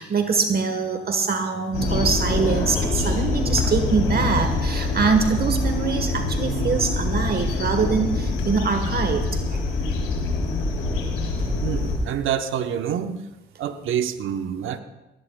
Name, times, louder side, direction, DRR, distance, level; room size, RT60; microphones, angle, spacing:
voice 1, 0.0-9.7, right 5 dB, 50° right, 7 dB, 1.2 m, -24 dB
sound 1, 1.7-12.0, left 3 dB, 90° left, 3.2 m, -25 dB
voice 2, 11.4-13.2 13.6-14.8, right 9 dB, 80° right, 8 dB, 0.9 m, -27 dB
18.5 x 17.5 x 2.2 m, 1.0 s
supercardioid pair, 65°, 20 cm